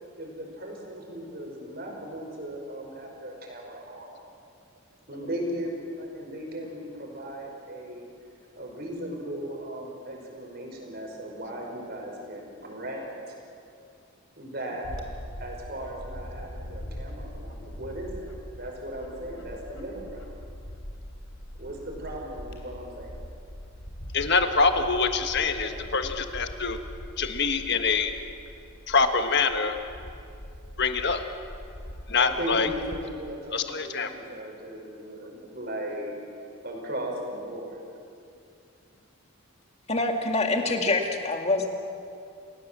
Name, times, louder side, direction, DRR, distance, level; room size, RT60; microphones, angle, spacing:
voice 1, 0.2-4.1 5.1-8.1 8.6-13.4 14.4-14.8 15.4-20.3 21.6-23.2 25.5-25.8 32.1-36.2 36.6-37.8, right 1 dB, 50° right, 1 dB, 5.3 m, -37 dB
Bird / Wind, 14.8-33.1, equal, 75° left, 3.2 m, -42 dB
voice 2, 24.1-26.8 27.2-28.1 28.9-29.7 30.8-31.2 32.1-32.7 33.5-34.1, left 4 dB, 55° left, 7 dB, 1.5 m, -25 dB
voice 3, 39.9-41.7, left 2 dB, 30° left, 3 dB, 2.3 m, -25 dB
29.0 x 17.5 x 7.5 m, 2.5 s
head